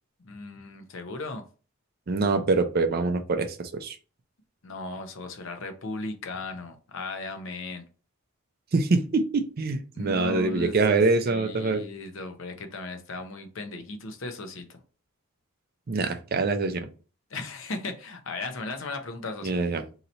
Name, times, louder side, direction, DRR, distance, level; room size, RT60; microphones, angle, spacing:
voice 1, 0.2-1.4 4.6-7.8 9.9-10.8 11.3-14.8 17.3-19.6, left 2 dB, 60° left, 6 dB, 0.7 m, -36 dB
voice 2, 2.1-4.0 8.7-11.8 15.9-16.9 19.4-19.8, right 3 dB, 45° right, 8 dB, 0.4 m, -25 dB
2.8 x 2.7 x 4.2 m, 0.36 s
head